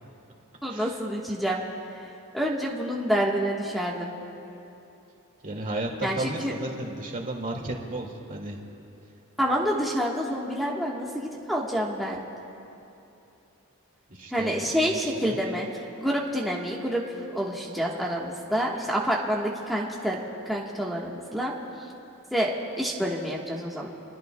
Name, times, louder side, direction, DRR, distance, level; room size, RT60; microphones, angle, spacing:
voice 1, 0.6-1.6 2.3-4.1 6.0-6.5 9.4-12.2 14.3-17.0 17.3-20.2 20.4-21.5 22.3-23.9, equal, ahead, -4 dB, 1.3 m, -28 dB
voice 2, 5.4-8.6 14.1-15.4, right 2 dB, 40° right, 1 dB, 2.1 m, -34 dB
27.0 x 20.5 x 2.3 m, 2.8 s
head